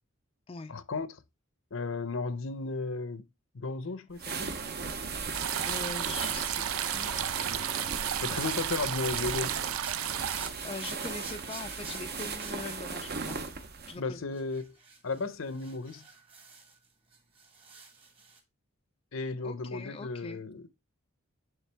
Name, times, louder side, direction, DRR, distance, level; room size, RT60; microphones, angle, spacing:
voice 1, 0.7-1.2 1.7-3.3 3.5-4.6 8.2-9.6 14.0-14.8 15.0-16.0 19.1-20.7, left 3 dB, 70° left, 0.7 m, -34 dB
sound 1, 4.1-14.0, right 5 dB, 50° right, 0.8 m, -37 dB
sound 2, 5.3-10.5, right 10 dB, 85° right, 0.4 m, -33 dB
voice 2, 5.6-7.4 10.4-13.4 13.9-14.2 19.4-20.4, left 4 dB, 25° left, 0.4 m, -42 dB
sound 3, 8.4-13.7 14.3-16.9 17.1-18.4, right 4 dB, 25° right, 1.3 m, -48 dB
9.0 x 3.5 x 3.4 m
head